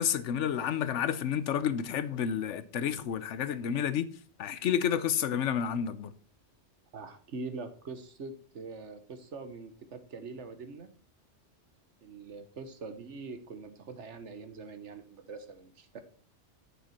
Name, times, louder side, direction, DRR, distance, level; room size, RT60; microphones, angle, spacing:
voice 1, 0.0-4.1 4.4-6.1, left 8 dB, 80° left, 1.1 m, -30 dB
voice 2, 6.9-10.9 12.0-16.0, right 4 dB, 70° right, 1.4 m, -43 dB
9.1 x 6.8 x 4.2 m
omnidirectional pair, 1.2 m